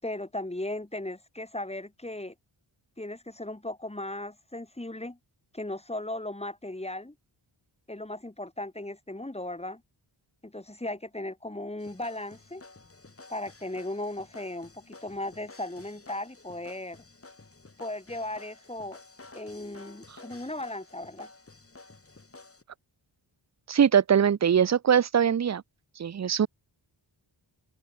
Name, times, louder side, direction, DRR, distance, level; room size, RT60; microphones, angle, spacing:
voice 1, 0.0-2.3 3.0-5.2 5.5-7.1 7.9-9.8 10.4-12.6 13.3-17.0 17.8-19.0 19.3-21.3, left 1 dB, 15° left, 4.6 m, -37 dB
sound 1, 11.8-22.6, left 3 dB, 30° left, 5.4 m, -52 dB
voice 2, 23.7-25.6 26.0-26.5, right 8 dB, 35° right, 0.6 m, -22 dB
open air
wide cardioid pair, 115°, 47 cm